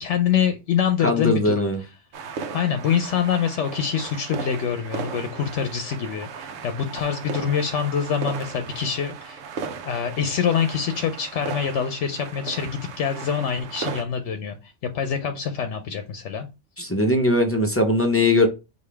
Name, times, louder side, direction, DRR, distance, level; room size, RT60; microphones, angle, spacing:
voice 1, 0.0-1.7 2.5-9.4 9.8-16.5, left 8 dB, 75° left, 0.8 m, -25 dB
voice 2, 1.0-1.8 16.8-18.5, left 1 dB, 25° left, 0.3 m, -20 dB
sound 1, 2.1-14.0, right 5 dB, 85° right, 1.0 m, -36 dB
4.9 x 2.6 x 3.3 m
omnidirectional pair, 1.3 m